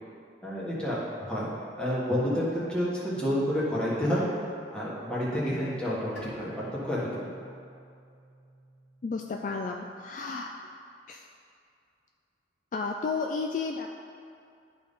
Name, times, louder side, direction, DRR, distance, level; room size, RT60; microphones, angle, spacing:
voice 1, 0.4-1.5 1.8-4.3 4.7-7.1, equal, 5° left, -7 dB, 1.4 m, -29 dB
Bowed string instrument, 6.2-9.4, right 1 dB, 85° left, 1.9 m, -48 dB
voice 2, 9.0-10.5 11.1-11.3 12.7-13.9, left 4 dB, 45° left, 2 dB, 0.3 m, -32 dB
11.5 x 4.0 x 3.7 m, 2.4 s
head